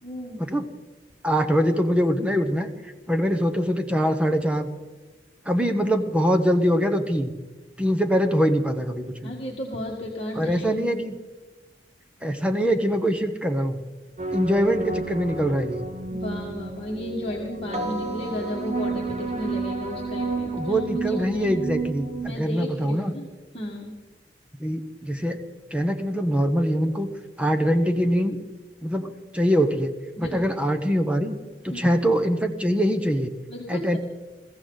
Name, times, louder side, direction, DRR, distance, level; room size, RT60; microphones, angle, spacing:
voice 1, 0.0-0.4 9.2-10.7 16.1-20.8 21.1-21.5 22.2-23.3 23.5-23.9 30.2-30.4 31.7-31.8 33.5-34.0, left 1 dB, 35° left, -3 dB, 1.9 m, -34 dB
voice 2, 1.2-2.7 3.1-4.7 5.4-7.3 7.8-9.3 10.4-11.2 12.2-13.8 14.3-15.9 20.5-23.1 24.6-25.4 25.7-27.1 27.4-28.4 28.8-29.9 30.2-31.4 31.6-33.3 33.7-34.0, equal, 5° right, 6 dB, 1.0 m, -23 dB
sound 1, 14.2-22.3, right 3 dB, 40° right, 1.1 m, -31 dB
22.0 x 15.0 x 4.0 m, 1.2 s
head